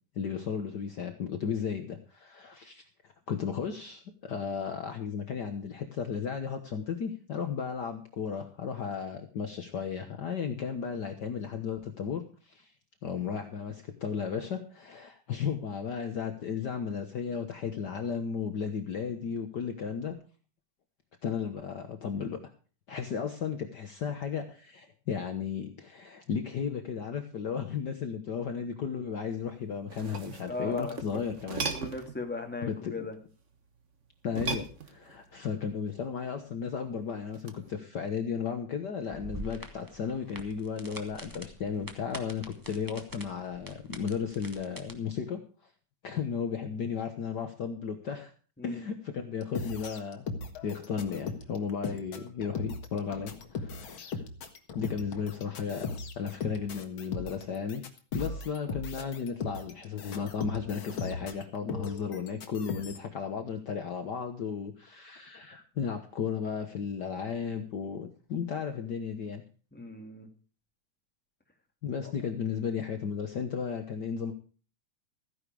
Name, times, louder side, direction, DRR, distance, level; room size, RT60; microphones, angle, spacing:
voice 1, 0.1-2.8 3.3-12.7 13.0-20.2 21.2-22.4 22.9-31.7 32.6-33.1 34.2-45.4 46.0-48.3 48.6-50.3 50.6-54.2 54.7-55.9 56.1-57.8 58.1-69.4 71.8-74.3, left 6 dB, 65° left, 6 dB, 1.0 m, -34 dB
sound 1, 29.7-32.2 34.3-35.3 37.3-37.7, right 4 dB, 70° right, 0.7 m, -37 dB
voice 2, 30.5-31.3 31.7-33.1 48.6-48.8 69.7-70.3, left 3 dB, 5° left, 2 dB, 2.1 m, -37 dB
sound 2, 39.1-44.9, right 1 dB, 20° right, 0.5 m, -45 dB
sound 3, 49.4-63.0, left 4 dB, 50° left, 2.0 m, -38 dB
15.5 x 10.0 x 4.8 m, 0.38 s
omnidirectional pair, 3.6 m